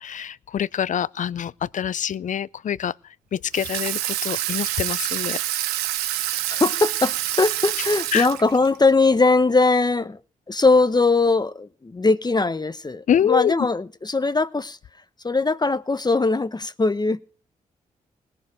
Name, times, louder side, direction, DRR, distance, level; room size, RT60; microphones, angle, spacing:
voice 1, 0.0-2.9 3.3-5.4 8.1-8.3 13.1-13.5, left 9 dB, 50° left, 0.5 m, -25 dB
Water tap faucet / Sink (filling or washing), 3.5-8.8, right 14 dB, 85° right, 0.6 m, -27 dB
voice 2, 6.5-10.2 10.5-14.8 15.2-17.2, left 3 dB, 25° left, 0.9 m, -20 dB
20.5 x 6.9 x 4.9 m
hypercardioid pair, 40°, 16 cm